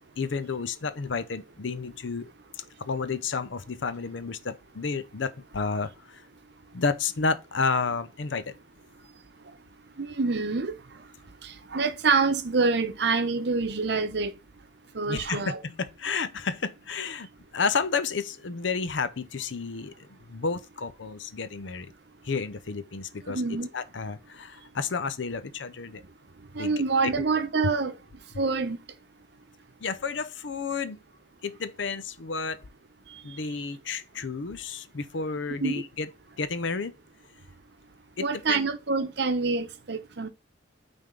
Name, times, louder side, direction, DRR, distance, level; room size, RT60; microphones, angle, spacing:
voice 1, 0.2-2.3 2.5-6.3 6.7-8.6 15.1-17.3 17.5-21.9 22.2-23.4 23.7-26.0 26.5-26.7 27.2-27.3 29.8-31.0 31.4-32.6 33.2-36.1 36.4-36.9 38.2-38.7, left 4 dB, 70° left, 0.7 m, -31 dB
voice 2, 10.0-10.7 11.4-14.3 14.9-15.6 23.3-23.7 26.5-27.9 28.4-28.8 35.6-35.8 38.2-40.3, right 4 dB, 60° right, 0.8 m, -26 dB
9.0 x 3.5 x 3.8 m
head